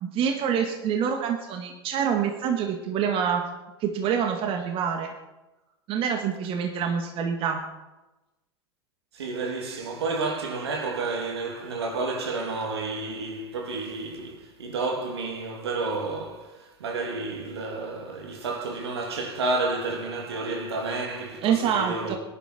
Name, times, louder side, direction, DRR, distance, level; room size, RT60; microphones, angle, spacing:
voice 1, 0.0-3.5 3.8-5.2 5.9-7.7 21.4-22.2, right 7 dB, 45° right, 2.0 m, -26 dB
voice 2, 9.1-22.2, right 3 dB, 80° right, 2.9 m, -30 dB
20.0 x 11.0 x 4.5 m
hypercardioid pair, 95°, 13 cm